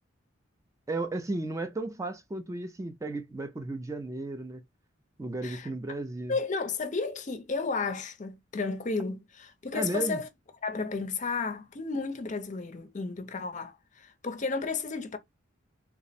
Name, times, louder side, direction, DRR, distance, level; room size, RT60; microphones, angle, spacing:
voice 1, 0.9-4.6 5.2-6.4 9.7-10.2, right 2 dB, 15° right, 0.4 m, -34 dB
voice 2, 6.3-10.3 10.6-15.2, left 4 dB, 40° left, 0.6 m, -33 dB
3.4 x 2.1 x 4.0 m
head